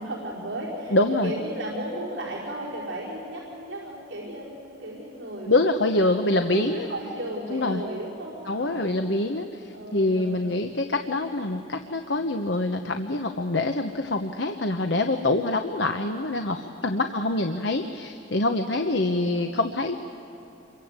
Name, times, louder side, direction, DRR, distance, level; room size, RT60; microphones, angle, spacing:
voice 1, 0.0-5.6 5.9-6.1 6.5-9.0 9.7-10.6 16.8-17.3 18.8-19.3, right 1 dB, 80° right, -5 dB, 4.9 m, -35 dB
voice 2, 0.9-1.3 5.4-6.9 7.5-7.8 8.5-20.0, left 2 dB, 65° left, 6 dB, 1.1 m, -25 dB
28.0 x 23.5 x 8.2 m, 2.9 s
head